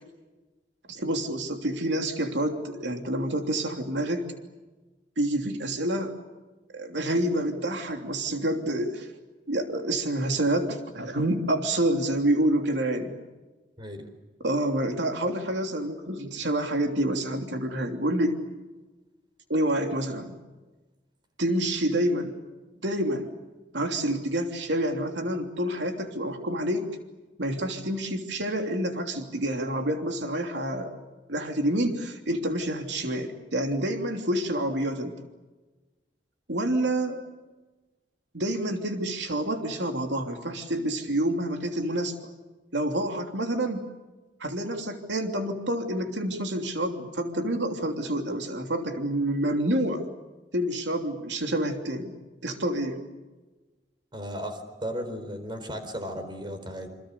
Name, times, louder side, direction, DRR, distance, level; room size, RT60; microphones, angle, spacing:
voice 1, 0.9-4.2 5.2-6.1 6.7-9.1 9.5-13.2 14.4-18.4 19.5-20.3 21.4-22.4 22.8-23.3 23.7-26.9 27.4-31.0 31.3-35.1 36.5-37.2 38.3-42.1 42.7-43.8 44.4-50.0 50.5-52.1 52.4-53.0, right 1 dB, 85° right, 4 dB, 3.1 m, -28 dB
voice 2, 54.1-56.9, equal, 25° right, 7 dB, 4.6 m, -35 dB
28.0 x 27.0 x 6.8 m, 1.2 s
head